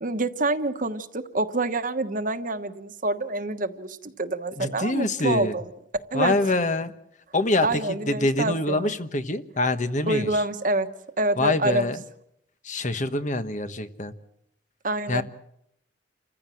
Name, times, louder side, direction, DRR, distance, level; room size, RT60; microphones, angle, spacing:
voice 1, 0.0-5.6 6.1-6.4 7.6-8.9 10.1-10.9 11.2-11.9 14.8-15.2, right 2 dB, 45° right, 9 dB, 1.3 m, -27 dB
voice 2, 4.6-5.6 6.1-6.9 7.3-10.4 11.4-12.0 12.6-14.1 15.1-15.2, left 2 dB, 40° left, 10 dB, 1.4 m, -25 dB
29.5 x 15.5 x 7.8 m, 0.76 s
head